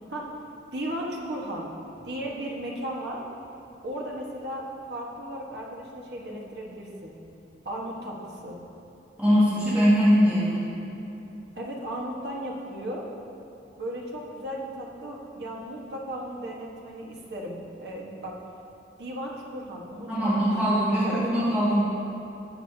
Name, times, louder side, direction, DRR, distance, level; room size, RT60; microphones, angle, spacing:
voice 1, 0.7-1.7 2.0-3.2 3.8-7.1 7.6-8.6 11.6-13.0 13.8-18.3 19.0-21.5, right 1 dB, 65° right, -3 dB, 1.3 m, -35 dB
voice 2, 9.2-10.7 20.1-21.8, equal, 10° right, -12 dB, 1.8 m, -21 dB
16.5 x 6.3 x 2.8 m, 2.8 s
head